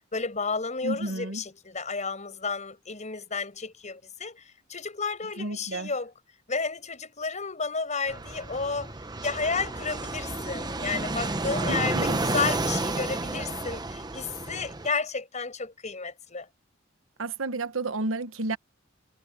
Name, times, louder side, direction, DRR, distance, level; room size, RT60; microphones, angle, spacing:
voice 1, 0.1-6.1 6.5-8.9 9.2-16.5, left 4 dB, 35° left, 5.6 m, -32 dB
voice 2, 0.8-1.4 5.4-5.9 11.7-12.2 17.2-18.6, right 2 dB, 75° right, 1.2 m, -31 dB
Fixed-wing aircraft airplane, 8.1-14.9, right 2 dB, 20° right, 1.0 m, -31 dB
head